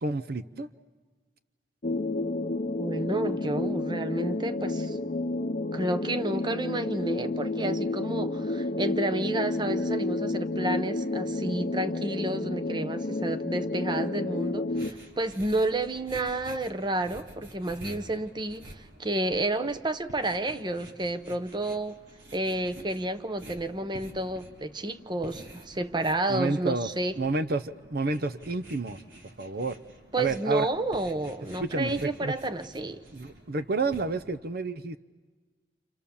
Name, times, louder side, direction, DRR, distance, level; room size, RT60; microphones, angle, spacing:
voice 1, 0.0-0.7 26.3-26.9 27.2-29.0 29.4-29.8 30.2-30.7 31.6-32.3 33.1-35.0, right 3 dB, 55° right, 12 dB, 0.8 m, -30 dB
sound 1, 1.8-14.9, left 2 dB, 40° left, 0.8 m, -30 dB
voice 2, 2.8-5.0 5.7-22.0 22.3-27.1 30.1-33.0, right 2 dB, 25° right, 11 dB, 0.9 m, -30 dB
sound 2, 14.7-34.4, right 1 dB, 80° right, 4.2 m, -49 dB
29.5 x 28.0 x 7.1 m, 1.4 s
head